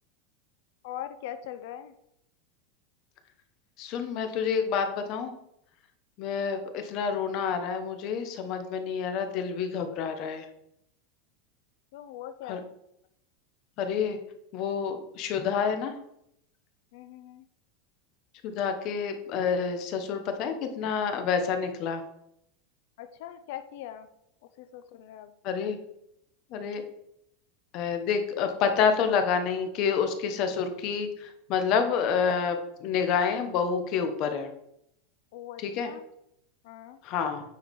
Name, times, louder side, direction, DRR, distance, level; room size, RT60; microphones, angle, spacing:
voice 1, 0.8-1.9 11.9-12.7 16.9-17.4 23.0-24.1 24.6-25.3 35.3-36.1 36.6-37.0, left 11 dB, 60° left, 10 dB, 0.6 m, -41 dB
voice 2, 3.8-5.3 6.2-10.5 12.5-12.6 13.8-14.2 14.5-15.9 18.4-22.0 25.4-25.8 26.5-26.8 27.7-34.5 35.6-35.9 37.0-37.4, left 6 dB, 40° left, 7 dB, 1.1 m, -28 dB
9.4 x 4.8 x 5.3 m, 0.77 s
supercardioid pair, 170°, 0 cm